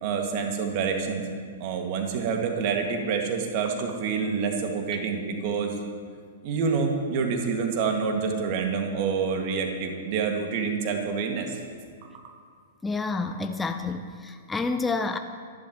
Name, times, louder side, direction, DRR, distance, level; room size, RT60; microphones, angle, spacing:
voice 1, 0.0-1.3 1.6-5.8 6.4-11.6, right 5 dB, 45° right, 3 dB, 2.1 m, -27 dB
voice 2, 12.8-15.2, left 3 dB, 10° left, 7 dB, 0.7 m, -29 dB
26.5 x 11.0 x 3.1 m, 2.1 s
figure-of-eight pair, 105°, 0 cm